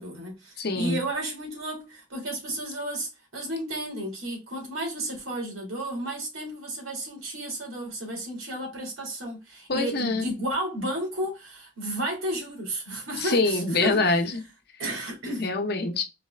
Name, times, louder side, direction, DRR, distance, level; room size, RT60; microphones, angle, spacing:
voice 1, 0.0-14.0 14.8-15.4, right 1 dB, 80° right, 2.1 m, -32 dB
voice 2, 0.6-1.0 9.7-10.3 13.2-14.4 15.4-16.0, left 3 dB, 50° left, 0.8 m, -25 dB
4.1 x 3.3 x 3.3 m
head